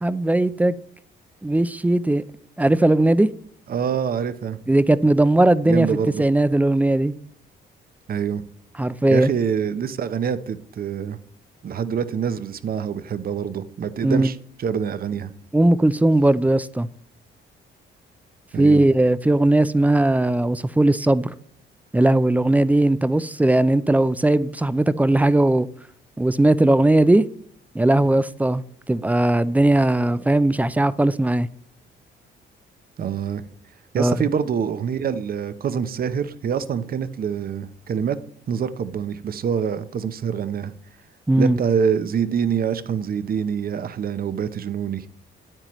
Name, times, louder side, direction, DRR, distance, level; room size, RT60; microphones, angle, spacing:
voice 1, 0.0-0.7 1.4-2.2 2.6-3.3 4.7-5.9 6.2-7.1 8.8-9.3 14.0-14.3 15.5-16.9 18.6-21.3 21.9-25.7 26.2-27.2 27.7-31.5 34.0-34.2 41.3-41.6, right 1 dB, 10° right, 0.4 m, -18 dB
voice 2, 3.7-4.6 5.6-6.2 8.1-8.4 9.1-11.2 11.6-15.3 18.5-18.9 33.0-33.4 33.9-38.2 38.5-40.7 41.4-45.1, right 7 dB, 50° right, 0.7 m, -25 dB
9.7 x 8.9 x 3.1 m
cardioid pair, 90°, 20 cm